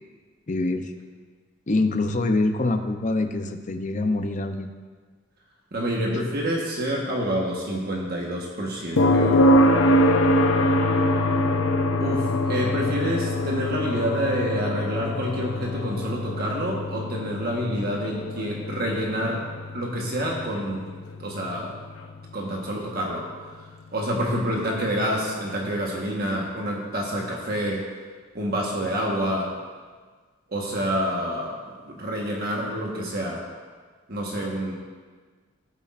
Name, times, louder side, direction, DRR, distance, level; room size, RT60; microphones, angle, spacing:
voice 1, 0.5-0.9 1.7-4.7, left 2 dB, 35° left, 7 dB, 0.6 m, -25 dB
voice 2, 5.7-9.5 12.0-19.4 19.7-20.8 21.2-21.7 22.3-23.6 23.9-27.8 28.3-29.5 30.5-31.6 31.8-33.4 34.1-34.7, equal, 50° right, -2 dB, 1.3 m, -28 dB
sound 1, 9.0-22.8 25.1-25.2, left 1 dB, 80° left, 0.8 m, -24 dB
15.5 x 8.3 x 2.5 m, 1.5 s
head